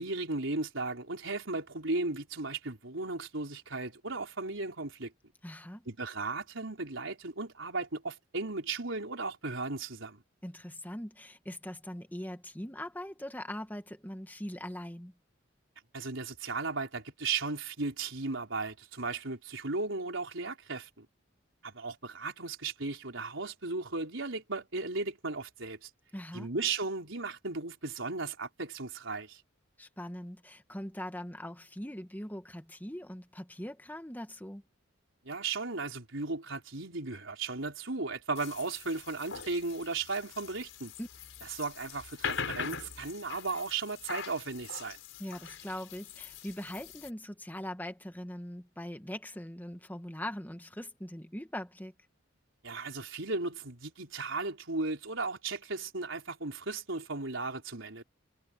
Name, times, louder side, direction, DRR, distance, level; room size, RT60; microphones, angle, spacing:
voice 1, 0.0-5.1 5.9-10.2 15.9-21.1 21.6-25.9 26.3-29.4 35.2-40.9 41.5-45.0 52.6-58.0, right 3 dB, 80° right, 4.1 m, -36 dB
voice 2, 5.4-5.9 10.4-15.1 26.1-26.5 29.8-34.6 41.0-41.1 45.2-51.9, left 1 dB, 10° left, 1.9 m, -41 dB
sound 1, 38.4-47.1, left 6 dB, 75° left, 4.9 m, -42 dB
head